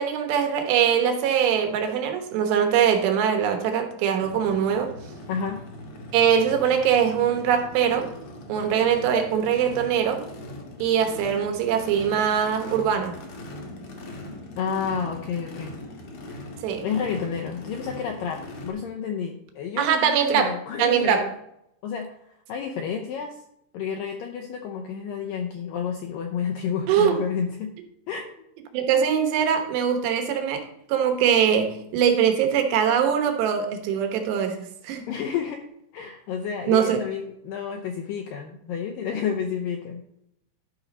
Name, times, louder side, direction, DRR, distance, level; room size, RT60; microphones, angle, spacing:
voice 1, 0.0-4.9 6.1-8.1 8.5-10.2 10.8-13.1 16.6-16.8 19.8-20.5 20.8-21.3 26.9-27.2 28.7-30.6 30.9-34.6 34.8-35.0 36.7-37.0, right 8 dB, 85° right, 5 dB, 3.3 m, -22 dB
Race car auto racing / Idling / Accelerating revving vroom, 4.2-18.7, left 1 dB, 60° left, 1.4 m, -40 dB
voice 2, 5.3-5.6 14.6-15.7 16.8-21.3 21.8-22.2 22.5-23.4 23.7-27.7 28.1-28.5 35.1-35.6 35.9-40.0, left 7 dB, 80° left, 2 dB, 2.0 m, -30 dB
12.0 x 5.4 x 4.0 m, 0.76 s
omnidirectional pair, 4.8 m